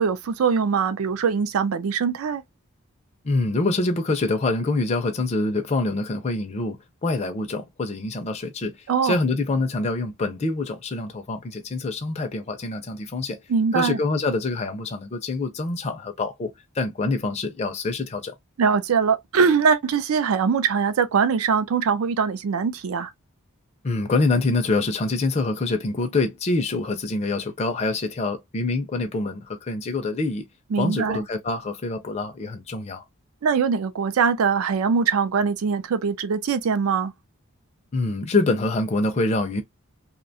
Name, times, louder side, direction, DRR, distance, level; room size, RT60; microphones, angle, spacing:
voice 1, 0.0-2.4 8.9-9.2 13.5-14.0 18.6-23.1 30.7-31.2 33.4-37.1, right 6 dB, 80° right, 0.4 m, -22 dB
voice 2, 3.2-8.8 9.0-13.4 13.7-18.3 23.8-30.5 30.8-33.0 37.9-39.6, left 3 dB, 30° left, 0.4 m, -25 dB
2.7 x 2.1 x 2.6 m
head